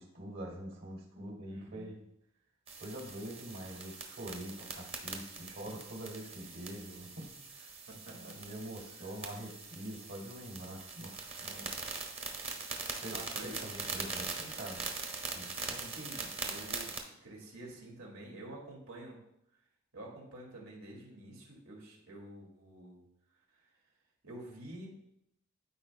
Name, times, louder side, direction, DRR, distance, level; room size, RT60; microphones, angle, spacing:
voice 1, 0.0-2.0 2.8-7.8 8.1-11.7 12.9-14.8 15.3-15.9, right 1 dB, 65° right, 0 dB, 2.8 m, -45 dB
voice 2, 1.5-1.9 7.9-8.4 9.0-9.1 13.1-13.6 15.5-16.9 17.2-19.2 19.9-23.0 24.2-25.0, right 1 dB, 85° right, -1 dB, 2.2 m, -48 dB
sound 1, 2.7-17.0, right 4 dB, 30° right, 0.9 m, -42 dB
13.5 x 4.5 x 2.2 m, 0.78 s
head